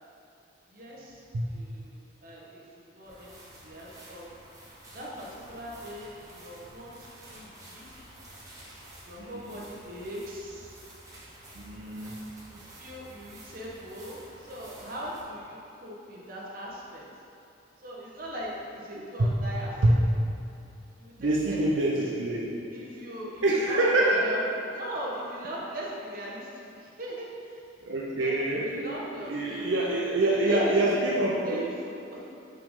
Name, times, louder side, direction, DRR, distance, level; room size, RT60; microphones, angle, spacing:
voice 1, 0.7-2.6 2.9-3.3 3.6-4.3 4.9-8.1 9.0-10.8 12.5-17.1 17.8-20.0 21.0-22.0 22.7-24.4 24.7-27.7 28.1-30.7 31.4-32.3, equal, 50° right, -5 dB, 1.1 m, -40 dB
sound 1, 3.0-15.2, right 1 dB, 15° right, 1.0 m, -50 dB
voice 2, 11.5-12.2 19.2-19.3 19.8-20.0 21.2-22.6 23.4-24.3 27.8-31.7, right 1 dB, 85° right, -3 dB, 0.6 m, -25 dB
5.6 x 5.3 x 3.6 m, 2.7 s
head